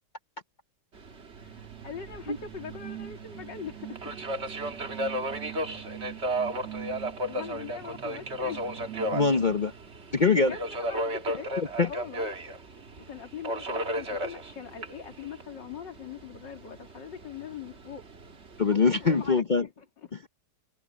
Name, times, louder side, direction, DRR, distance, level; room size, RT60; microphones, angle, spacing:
Subway metro underground, 0.9-19.4, right 1 dB, 40° right, 1.9 m, -35 dB
voice 1, 1.3-4.0 6.7-8.8 10.5-12.3 13.0-18.0 18.7-19.7 20.0-20.1, left 7 dB, 85° left, 3.1 m, -42 dB
sound 1, 1.3-9.9, right 12 dB, 65° right, 1.4 m, -44 dB
voice 2, 9.1-9.7 10.1-10.6 11.8-11.9 18.6-19.7 20.1-20.3, left 4 dB, 45° left, 0.6 m, -23 dB
omnidirectional pair, 1.9 m